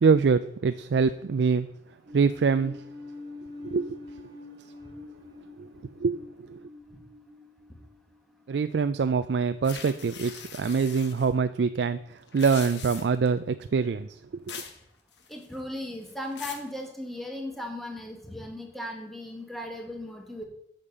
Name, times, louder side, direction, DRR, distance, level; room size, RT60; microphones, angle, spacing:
voice 1, 0.0-1.7 2.1-2.8 3.6-4.0 6.0-6.2 6.5-6.6 8.5-14.1, right 5 dB, 70° right, 11 dB, 0.4 m, -24 dB
sound 1, 2.1-8.5, left 2 dB, 30° right, 2.8 m, -45 dB
sound 2, 9.6-11.3 12.2-13.3 14.5-14.8 15.1-15.6 16.0-16.7, left 7 dB, 75° left, 1.4 m, -41 dB
voice 2, 15.3-20.4, left 1 dB, ahead, 1 dB, 1.7 m, -37 dB
8.7 x 6.6 x 6.8 m, 0.75 s
head